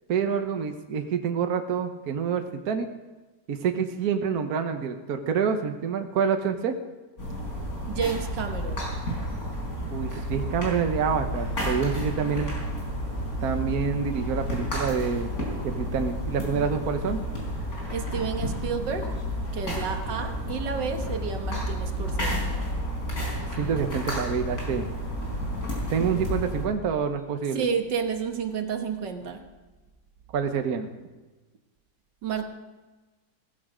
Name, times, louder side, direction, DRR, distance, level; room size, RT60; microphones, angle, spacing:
voice 1, 0.1-2.9 3.5-6.7 9.9-12.5 13.4-15.3 15.6-17.2 23.6-24.9 25.9-27.6 30.3-30.9, right 6 dB, 60° right, 6 dB, 1.5 m, -27 dB
sound 1, 7.2-26.7, equal, 55° left, 5.0 m, -31 dB
voice 2, 7.9-8.9 17.9-19.1 19.5-22.5 27.5-29.4 32.2-32.4, right 6 dB, 90° right, 5 dB, 2.1 m, -31 dB
18.0 x 15.0 x 5.1 m, 1.2 s
omnidirectional pair, 1.9 m